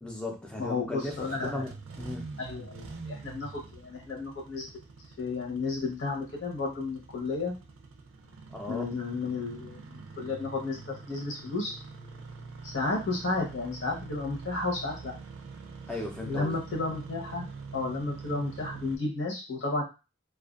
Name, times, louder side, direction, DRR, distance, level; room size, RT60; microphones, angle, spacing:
voice 1, 0.0-2.4 8.5-8.8 15.9-16.6, left 2 dB, 5° left, 0 dB, 0.5 m, -36 dB
voice 2, 0.6-1.7 2.4-4.7 5.2-7.5 8.7-11.7 12.7-15.1 16.3-19.8, left 3 dB, 65° left, -1 dB, 0.9 m, -33 dB
Engine starting, 0.8-19.0, right 4 dB, 85° right, 0.4 m, -45 dB
2.4 x 2.3 x 2.4 m, 0.29 s
head